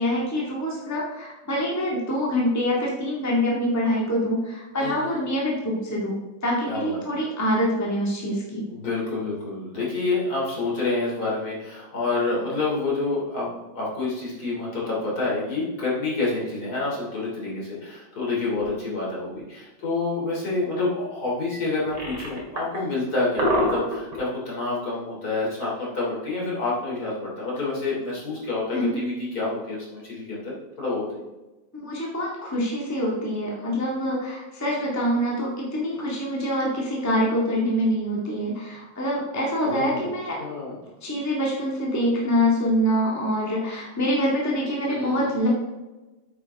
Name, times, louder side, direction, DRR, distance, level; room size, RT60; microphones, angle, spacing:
voice 1, 0.0-6.1 6.4-8.6 28.7-29.0 31.7-40.4 41.0-45.5, equal, 10° left, -4 dB, 1.9 m, -25 dB
voice 2, 4.8-5.2 6.7-7.2 8.7-31.2 39.6-40.1 40.4-40.7 44.8-45.3, left 3 dB, 50° left, -5 dB, 3.5 m, -28 dB
sound 1, 18.6-18.7 21.8-22.8 23.2-24.2, equal, 60° right, 2.8 m, -25 dB
9.1 x 8.4 x 3.6 m, 1.1 s
omnidirectional pair, 2.2 m